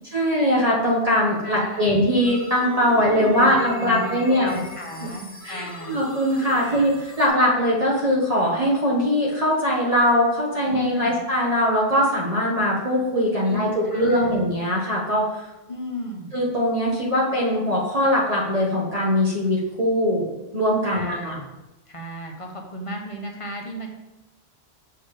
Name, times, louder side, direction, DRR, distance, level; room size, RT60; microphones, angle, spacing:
voice 1, 0.1-4.6 5.0-5.1 5.4-15.4 16.3-21.3, equal, 35° right, -5 dB, 1.4 m, -21 dB
voice 2, 1.4-2.0 2.9-6.0 6.6-7.0 10.6-11.2 13.4-14.4 15.7-16.3 20.8-21.5 21.9-23.9, equal, 30° left, 1 dB, 1.0 m, -35 dB
sound 1, 2.2-7.3, left 2 dB, 15° left, 1.6 m, -40 dB
sound 2, 3.2-6.0, left 2 dB, 60° left, 0.9 m, -39 dB
7.0 x 4.3 x 4.9 m, 0.99 s
omnidirectional pair, 1.1 m